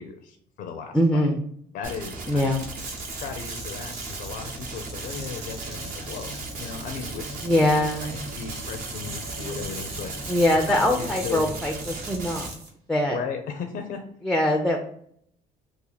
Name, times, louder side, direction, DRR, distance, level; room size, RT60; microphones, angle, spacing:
voice 1, 0.0-1.2 1.7-2.6 3.2-10.1 10.7-11.5 13.1-14.0, left 6 dB, 70° left, 5 dB, 0.5 m, -36 dB
voice 2, 0.9-1.4 2.3-2.7 7.4-8.1 10.3-12.5 12.9-13.2 14.2-14.9, left 1 dB, 5° left, 3 dB, 0.4 m, -22 dB
sound 1, 1.8-12.5, right 3 dB, 55° right, 0.8 m, -38 dB
sound 2, 2.4-12.7, right 2 dB, 85° right, 1.2 m, -40 dB
sound 3, 4.3-12.4, left 1 dB, 20° right, 0.8 m, -43 dB
2.7 x 2.4 x 4.0 m, 0.68 s
cardioid pair, 110°, 17 cm